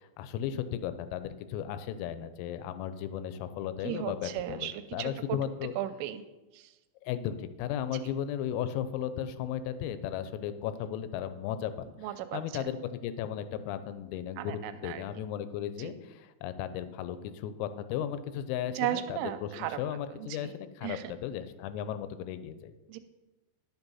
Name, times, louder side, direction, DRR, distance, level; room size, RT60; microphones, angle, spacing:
voice 1, 0.0-5.7 7.0-22.7, left 10 dB, 90° left, 11 dB, 3.4 m, -35 dB
voice 2, 3.8-5.4 5.8-6.2 6.5-6.7 12.0-12.6 14.4-15.0 15.8-15.9 18.8-19.8 20.1-20.5 20.8-21.1 22.9-23.0, right 13 dB, 85° right, 11 dB, 2.8 m, -35 dB
11.0 x 7.0 x 5.5 m, 1.1 s
omnidirectional pair, 5.9 m